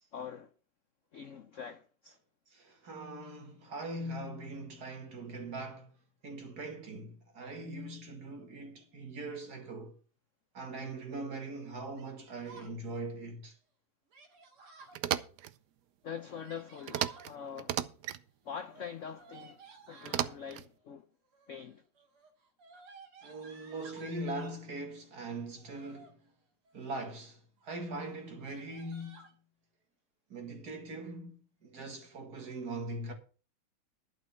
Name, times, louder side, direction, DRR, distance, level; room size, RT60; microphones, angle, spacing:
voice 1, 0.1-0.5 1.1-2.2 16.0-17.8 18.4-19.6 19.9-21.1 21.5-21.8, left 7 dB, 75° left, 0.7 m, -44 dB
voice 2, 2.5-6.0 6.2-10.0 10.5-13.6 23.2-26.2 26.7-29.4 30.3-33.1, right 2 dB, 45° right, 2.4 m, -41 dB
Yell, 12.0-12.7 14.1-15.0 16.2-17.3 18.6-20.4 21.2-21.6 22.0-24.6 25.5-26.1 26.7-27.2 27.6-27.7 28.0-28.1 28.4-29.3, right 4 dB, 85° right, 3.2 m, -55 dB
sound 1, 14.9-15.5 16.9-17.3 17.6-18.2 20.0-20.7, right 11 dB, 70° right, 1.0 m, -34 dB
11.5 x 6.1 x 6.9 m
omnidirectional pair, 2.3 m